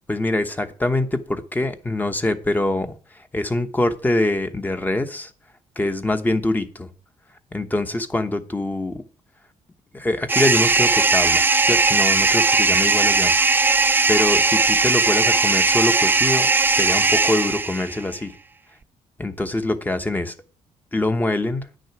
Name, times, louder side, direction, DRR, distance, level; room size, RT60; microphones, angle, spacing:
voice 1, 0.1-3.0 3.3-5.3 5.8-6.9 7.5-9.0 9.9-13.3 14.1-18.3 19.2-20.3 20.9-21.6, left 2 dB, 15° left, 8 dB, 1.0 m, -24 dB
sound 1, 10.3-18.0, right 3 dB, 15° right, 0.4 m, -18 dB
10.0 x 6.3 x 5.9 m, 0.39 s
cardioid pair, 115°, 12 cm